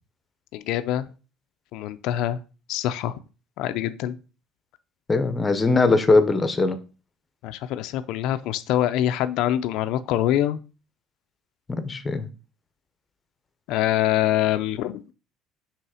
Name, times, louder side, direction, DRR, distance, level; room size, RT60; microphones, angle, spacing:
voice 1, 0.5-1.1 1.7-2.4 2.7-3.2 3.6-4.2 7.4-10.6 13.7-15.0, left 12 dB, 65° left, 0.4 m, -24 dB
voice 2, 5.1-6.8 11.8-12.3, left 3 dB, 15° left, 0.7 m, -20 dB
5.6 x 3.5 x 4.8 m
cardioid pair, 155°, 0 cm